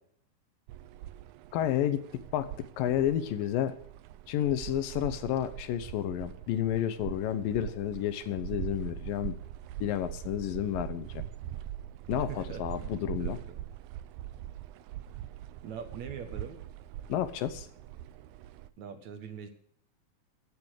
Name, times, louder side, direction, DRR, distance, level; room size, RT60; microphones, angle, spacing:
sound 1, 0.7-18.7, right 12 dB, 75° right, 1.8 m, -42 dB
voice 1, 1.5-3.8 4.3-9.4 9.8-11.2 12.1-13.4 17.1-17.7, left 11 dB, 85° left, 12 dB, 2.7 m, -31 dB
voice 2, 12.3-12.7 13.2-13.6 15.6-16.6 18.8-19.5, right 7 dB, 60° right, 7 dB, 2.4 m, -42 dB
16.0 x 8.7 x 6.6 m, 0.63 s
omnidirectional pair, 3.9 m